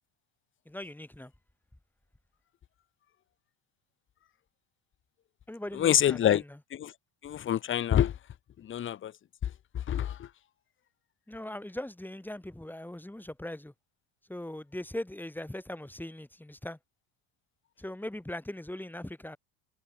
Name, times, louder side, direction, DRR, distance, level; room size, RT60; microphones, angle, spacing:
voice 1, 0.7-1.3 5.5-6.6 11.3-13.7 14.3-16.8 17.8-19.4, left 1 dB, 5° left, 2.6 m, -40 dB
voice 2, 5.8-6.4 6.8-6.9 7.2-8.1 8.6-9.1 9.9-10.3, left 10 dB, 30° left, 0.7 m, -26 dB
hypercardioid pair, 75°, 43 cm